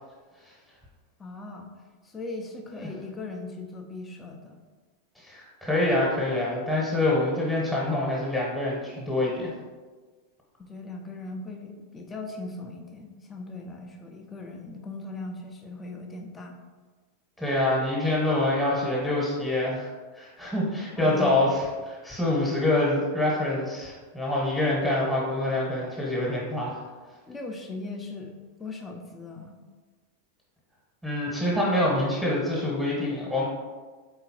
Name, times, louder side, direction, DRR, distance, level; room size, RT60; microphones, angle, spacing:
voice 1, 1.2-1.7 2.0-4.6 10.6-16.6 20.9-21.4 27.3-28.3 28.6-29.6, left 2 dB, 15° left, 2 dB, 0.6 m, -39 dB
voice 2, 5.2-9.5 17.4-19.9 20.1-21.6 21.9-26.8 31.0-33.4, left 1 dB, ahead, -5 dB, 1.1 m, -26 dB
4.3 x 3.7 x 2.9 m, 1.4 s
figure-of-eight pair, 90°, 0 cm